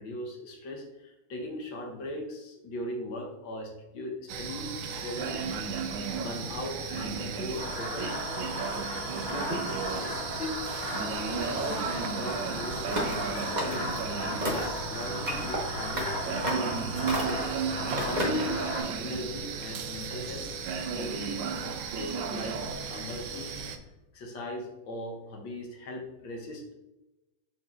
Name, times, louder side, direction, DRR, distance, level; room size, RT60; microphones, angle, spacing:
voice 1, 0.0-5.5 6.1-8.2 9.1-10.7 11.3-13.9 14.2-16.8 17.9-20.5 20.9-23.8 24.1-26.7, left 1 dB, 75° left, 1 dB, 1.8 m, -39 dB
sound 1, 4.3-23.8, right 5 dB, 75° right, 1.4 m, -34 dB
sound 2, 7.6-18.8, left 1 dB, 45° left, 3.1 m, -36 dB
sound 3, 12.9-13.2 13.6-14.0 14.4-14.8 15.2-15.6 16.0-16.1 16.4-16.7 17.1-17.5 18.0-18.5, equal, 25° right, 1.0 m, -31 dB
12.0 x 4.5 x 2.5 m, 0.99 s
omnidirectional pair, 2.1 m